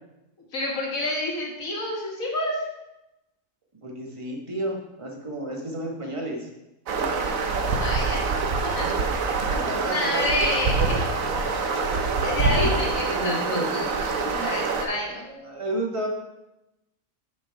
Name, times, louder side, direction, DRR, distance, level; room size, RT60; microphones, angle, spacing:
voice 1, 0.5-2.6 7.8-8.2 8.8-8.9 9.9-11.0 12.2-15.2, left 1 dB, 75° left, -1 dB, 2.1 m, -28 dB
voice 2, 3.8-6.5 8.6-8.7 9.5-10.4 10.8-10.9 12.4-12.7 13.1-13.7 14.3-16.1, right 1 dB, 25° right, 0 dB, 1.2 m, -32 dB
sound 1, 6.9-14.8, right 4 dB, 75° right, 1.3 m, -25 dB
7.1 x 6.1 x 4.6 m, 0.94 s
omnidirectional pair, 1.4 m